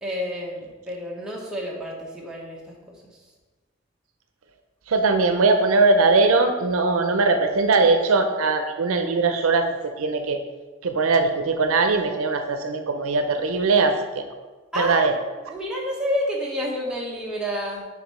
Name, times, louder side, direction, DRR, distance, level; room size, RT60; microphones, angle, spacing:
voice 1, 0.0-3.2 14.7-17.8, equal, 5° right, -4 dB, 0.9 m, -30 dB
voice 2, 4.9-9.7 10.0-10.4 10.8-14.2 14.8-15.1, right 3 dB, 80° right, 6 dB, 0.5 m, -20 dB
4.8 x 3.5 x 5.5 m, 1.3 s
head